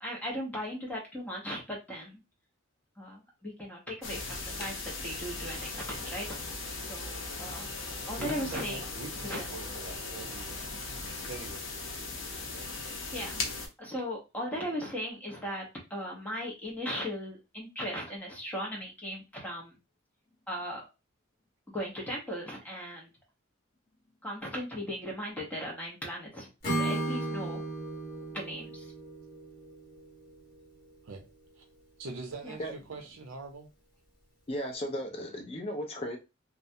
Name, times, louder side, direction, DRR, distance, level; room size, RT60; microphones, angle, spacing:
voice 1, 0.0-2.2 3.0-6.3 6.9-7.8 8.1-8.8 9.2-9.5 13.1-15.6 15.9-19.8 20.5-20.8 21.7-23.1 24.2-27.6 28.3-28.9 32.4-32.9 35.1-35.4, equal, 5° left, 0.8 m, -38 dB
sound 1, 4.0-13.7, left 3 dB, 65° left, 0.7 m, -38 dB
voice 2, 8.2-11.7 31.0-31.2 31.6-31.7 32.0-33.7, right 3 dB, 70° right, 0.6 m, -43 dB
Acoustic guitar / Strum, 26.6-30.6, right 2 dB, 45° left, 1.2 m, -35 dB
voice 3, 34.5-36.2, equal, 25° left, 0.4 m, -35 dB
2.3 x 2.1 x 2.7 m
head